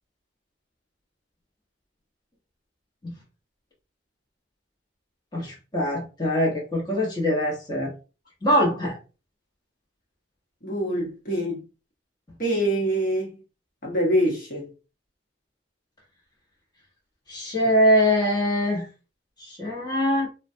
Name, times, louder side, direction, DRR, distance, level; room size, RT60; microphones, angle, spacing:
voice 1, 5.3-7.9 8.4-9.0 17.3-18.9 19.4-20.3, equal, 25° left, 1.0 m, -23 dB
voice 2, 10.6-11.6 12.4-13.4 13.8-14.7, equal, 50° left, 1.1 m, -25 dB
3.8 x 2.2 x 2.7 m
head